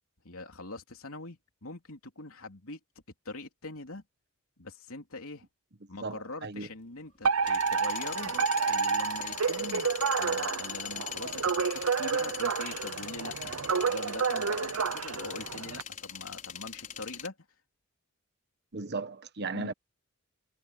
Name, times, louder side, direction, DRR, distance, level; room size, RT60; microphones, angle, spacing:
voice 1, 0.2-2.8 3.2-4.0 4.6-5.5 5.9-8.3 8.7-9.9 10.2-17.4 19.5-19.7, left 2 dB, 70° left, 3.3 m, -43 dB
voice 2, 6.0-6.7 18.7-19.7, right 3 dB, 50° right, 1.3 m, -36 dB
sound 1, 6.9-17.3, left 9 dB, 35° left, 5.7 m, -41 dB
Alarm, 7.2-15.8, right 5 dB, 70° right, 0.7 m, -30 dB
head